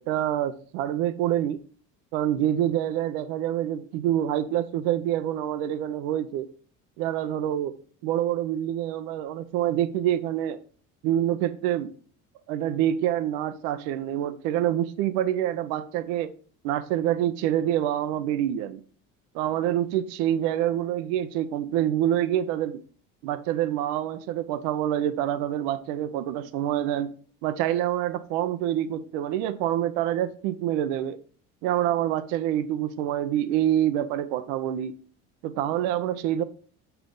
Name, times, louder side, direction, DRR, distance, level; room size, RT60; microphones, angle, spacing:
voice 1, 0.0-1.6 2.1-6.5 7.0-7.7 8.0-10.6 11.0-11.9 12.5-16.3 16.6-18.8 19.3-22.8 23.2-27.1 27.4-31.2 31.6-34.9 35.4-36.4, right 11 dB, 80° right, 0.7 m, -26 dB
6.9 x 5.7 x 3.7 m
supercardioid pair, 90°, 34 cm